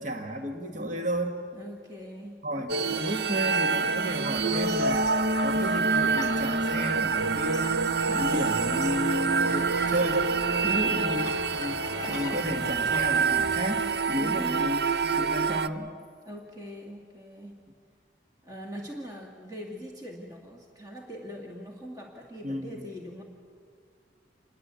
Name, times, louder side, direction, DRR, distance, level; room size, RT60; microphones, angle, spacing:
voice 1, 0.0-1.4 2.4-5.1 5.4-7.8 8.1-10.3 10.6-11.3 11.6-11.8 12.1-15.9 22.4-22.8, equal, 40° right, 4 dB, 1.8 m, -32 dB
voice 2, 1.5-2.4 10.7-11.4 14.2-14.7 16.2-17.6 18.4-23.2, equal, 20° right, 1 dB, 2.3 m, -41 dB
sound 1, 2.7-15.7, right 4 dB, 60° right, 0.7 m, -26 dB
sound 2, 4.3-14.0, left 2 dB, 20° left, 2.1 m, -42 dB
28.0 x 21.0 x 8.3 m, 2.1 s
head